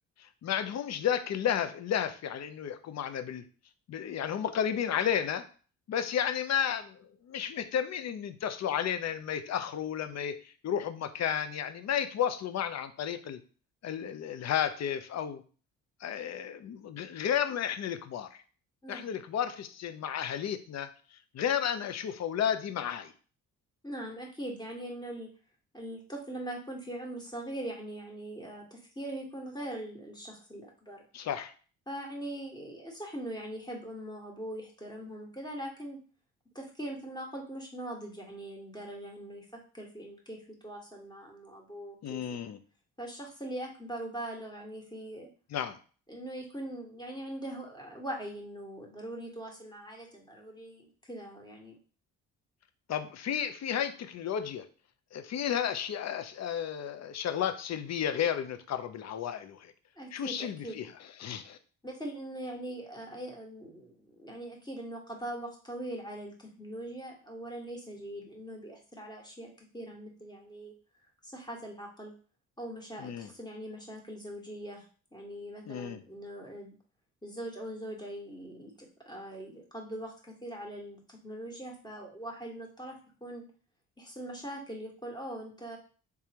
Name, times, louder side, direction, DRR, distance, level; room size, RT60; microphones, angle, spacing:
voice 1, 0.2-3.4 3.9-5.4 5.9-13.4 13.8-15.4 16.0-18.3 18.9-20.9 21.3-23.1 31.1-31.5 42.0-42.6 45.5-45.8 52.9-54.6 55.1-59.7 60.1-60.9 61.2-61.6 73.0-73.3 75.7-76.0, left 9 dB, 45° left, 11 dB, 0.5 m, -32 dB
voice 2, 23.8-25.3 25.7-31.0 31.9-36.0 36.5-42.2 43.0-45.3 46.1-51.8 60.0-60.8 61.8-70.7 71.2-72.1 72.6-74.8 75.1-76.8 77.2-83.4 84.0-85.8, right 1 dB, 10° left, 0 dB, 1.4 m, -41 dB
3.4 x 3.3 x 2.9 m, 0.40 s
hypercardioid pair, 50°, 39 cm